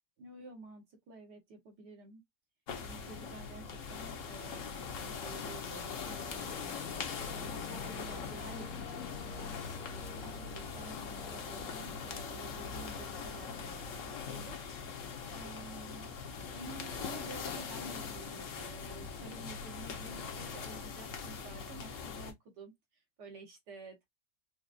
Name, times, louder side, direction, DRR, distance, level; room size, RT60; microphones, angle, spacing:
voice 1, 0.2-2.2 2.8-6.6 7.3-14.6 15.3-16.1 16.5-22.7 23.2-24.0, right 2 dB, 70° right, 1.8 m, -51 dB
sound 1, 2.7-22.3, left 5 dB, 55° left, 1.1 m, -41 dB
sound 2, 6.0-13.7, left 1 dB, 5° left, 0.5 m, -55 dB
5.0 x 2.4 x 2.4 m
omnidirectional pair, 1.9 m